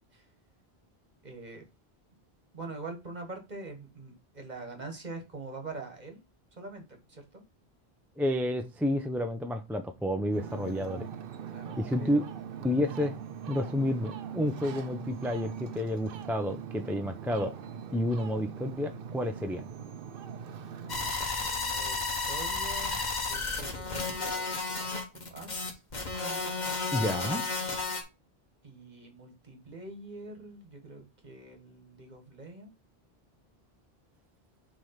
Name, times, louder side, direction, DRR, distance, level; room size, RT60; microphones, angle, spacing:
voice 1, 1.2-1.6 2.5-6.2 6.6-7.4 11.5-12.3 21.4-25.8 28.6-32.7, right 3 dB, 45° right, 4 dB, 1.6 m, -44 dB
voice 2, 8.2-11.1 11.8-12.2 12.6-13.1 13.5-17.5 17.9-19.7 26.9-27.4, left 1 dB, ahead, 5 dB, 0.6 m, -30 dB
Ocean, 10.3-21.1, right 8 dB, 65° right, 0.8 m, -41 dB
sound 1, 20.9-28.0, left 3 dB, 45° left, 1.5 m, -32 dB
6.2 x 3.5 x 5.7 m, 0.26 s
omnidirectional pair, 1.1 m